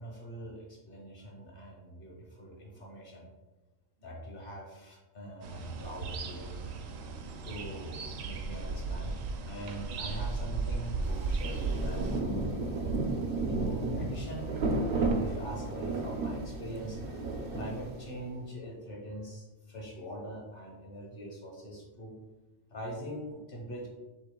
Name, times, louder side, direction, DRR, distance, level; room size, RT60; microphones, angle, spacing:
voice 1, 0.0-3.3 4.0-6.5 7.4-12.3 13.4-22.1 22.7-23.9, right 1 dB, 45° left, -1 dB, 1.3 m, -43 dB
sound 1, 5.4-12.2, right 3 dB, 75° right, 1.0 m, -36 dB
Rain, 11.0-18.3, right 3 dB, 60° right, 0.6 m, -33 dB
7.4 x 3.1 x 2.3 m, 1.1 s
omnidirectional pair, 1.4 m